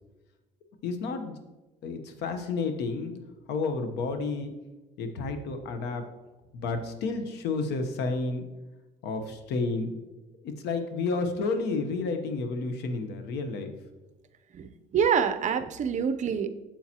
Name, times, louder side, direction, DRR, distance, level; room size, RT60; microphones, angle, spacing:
voice 1, 0.8-1.4 1.8-3.2 3.5-4.5 5.0-6.1 6.5-8.4 9.0-9.9 10.4-13.7, left 3 dB, 80° left, 7 dB, 1.0 m, -31 dB
voice 2, 14.5-16.5, right 7 dB, 45° right, 9 dB, 0.6 m, -26 dB
8.6 x 7.4 x 2.9 m, 1.1 s
cardioid pair, 110°, 17 cm